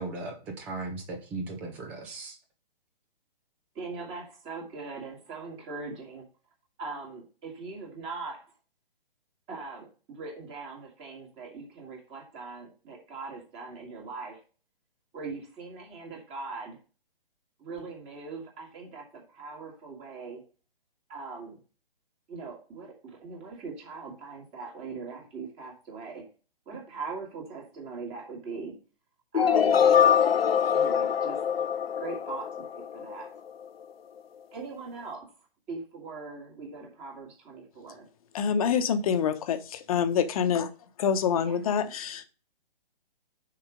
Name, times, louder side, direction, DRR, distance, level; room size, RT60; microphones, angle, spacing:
voice 1, 0.0-2.4, right 3 dB, 5° right, 4 dB, 0.4 m, -37 dB
voice 2, 3.7-6.3 6.8-8.4 9.5-14.4 15.1-16.8 17.6-20.4 21.1-21.6 22.3-26.2 26.7-28.8 29.3-29.8 30.7-31.4 32.0-33.3 34.5-35.3 35.7-38.1 41.4-41.9, right 4 dB, 20° right, 0 dB, 2.5 m, -41 dB
sound 1, 29.3-33.3, left 8 dB, 90° left, 0.6 m, -23 dB
voice 3, 38.3-40.7 41.0-42.2, left 7 dB, 40° left, 9 dB, 1.0 m, -26 dB
6.3 x 4.9 x 5.1 m, 0.35 s
hypercardioid pair, 140°, 29 cm